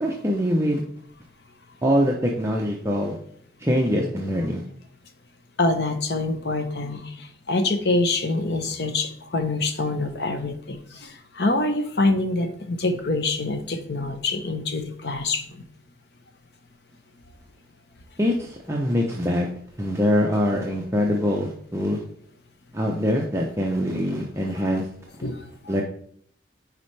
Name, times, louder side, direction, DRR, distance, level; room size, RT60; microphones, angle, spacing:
voice 1, 0.0-0.8 1.8-3.2 3.6-4.6 18.2-19.5 19.8-22.0 22.7-24.9 25.7-25.8, equal, 15° right, -1 dB, 0.6 m, -23 dB
voice 2, 5.6-15.4 25.2-25.4, left 2 dB, 60° left, 8 dB, 0.8 m, -25 dB
9.6 x 4.3 x 3.2 m, 0.65 s
head